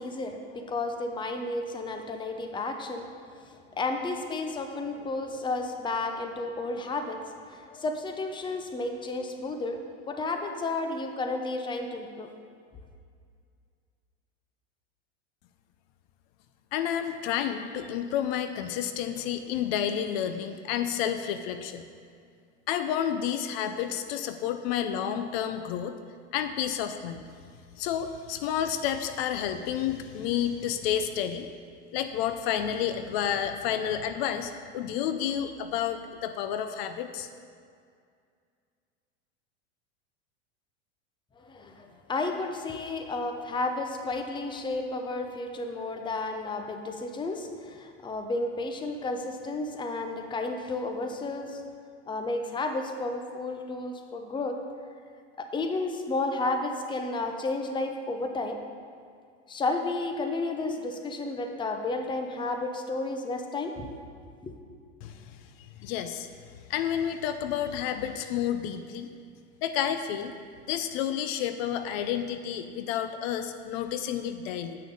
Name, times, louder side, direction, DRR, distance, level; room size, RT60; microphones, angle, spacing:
voice 1, 0.0-3.1 3.3-7.2 7.5-9.8 10.1-12.3 41.4-51.6 52.1-54.6 55.4-58.6 59.5-63.9 64.4-64.5, left 2 dB, 15° left, 5 dB, 0.7 m, -32 dB
voice 2, 16.7-21.8 22.7-25.9 26.3-27.2 27.8-31.5 31.9-37.3 65.0-66.3 66.7-69.1 69.6-70.3 70.7-74.8, left 9 dB, 60° left, 9 dB, 0.6 m, -30 dB
8.8 x 6.3 x 5.4 m, 2.2 s
supercardioid pair, 120°, 34 cm